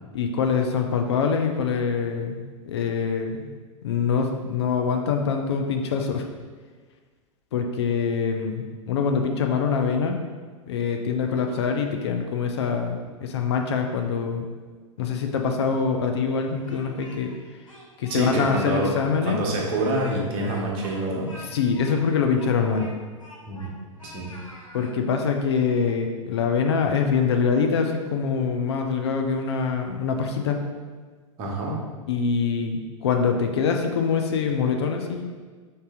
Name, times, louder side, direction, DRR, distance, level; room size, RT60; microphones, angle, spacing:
voice 1, 0.1-3.5 3.8-6.2 7.5-10.1 10.7-14.5 15.0-17.3 18.0-19.4 21.5-22.9 24.7-30.6 32.1-35.2, left 6 dB, 55° left, 3 dB, 0.5 m, -24 dB
Speech, 16.4-17.4 17.7-18.7 19.0-19.1 19.6-23.7 24.0-24.9, left 1 dB, 85° left, 0.8 m, -46 dB
voice 2, 18.1-18.9 19.2-21.3 23.5-23.7 24.0-24.3 31.4-31.8, right 1 dB, 35° right, -2 dB, 0.9 m, -27 dB
3.7 x 2.7 x 4.7 m, 1.4 s
figure-of-eight pair, 90°, 17 cm